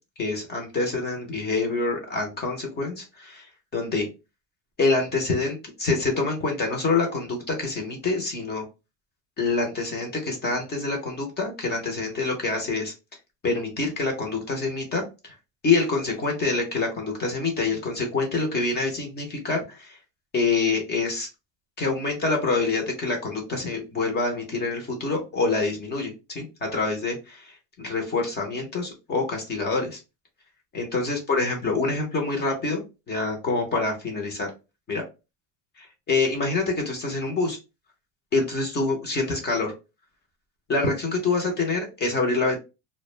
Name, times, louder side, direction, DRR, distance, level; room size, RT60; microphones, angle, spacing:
voice 1, 0.2-4.1 4.8-8.6 9.4-12.9 13.4-15.3 15.6-20.0 20.3-21.3 21.8-30.0 30.7-34.5 34.9-35.0 36.1-37.6 38.3-39.7 40.7-42.6, left 3 dB, 25° left, 2 dB, 0.5 m, -26 dB
2.3 x 2.1 x 3.0 m, 0.28 s
cardioid pair, 155°, 41 cm